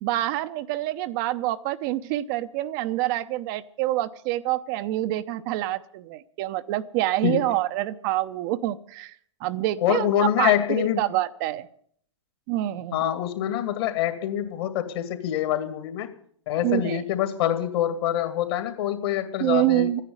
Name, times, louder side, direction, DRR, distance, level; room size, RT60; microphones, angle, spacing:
voice 1, 0.0-9.1 9.4-11.7 12.5-13.0 16.6-17.0 19.4-20.0, right 15 dB, 40° right, 10 dB, 0.8 m, -26 dB
voice 2, 9.8-11.0 12.9-16.1 16.5-20.0, left 11 dB, 55° left, 9 dB, 2.4 m, -25 dB
14.0 x 10.0 x 9.7 m, 0.62 s
hypercardioid pair, 110°, 16 cm